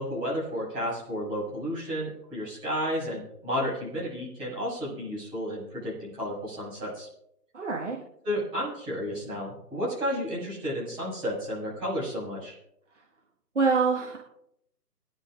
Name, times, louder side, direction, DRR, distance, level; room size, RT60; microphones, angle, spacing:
voice 1, 0.0-7.1 8.2-12.6, equal, 10° right, -8 dB, 6.1 m, -32 dB
voice 2, 7.5-8.0 12.9-13.0 13.5-14.2, right 4 dB, 45° right, 0 dB, 1.6 m, -25 dB
25.5 x 10.5 x 2.5 m, 0.77 s
figure-of-eight pair, 155°, 48 cm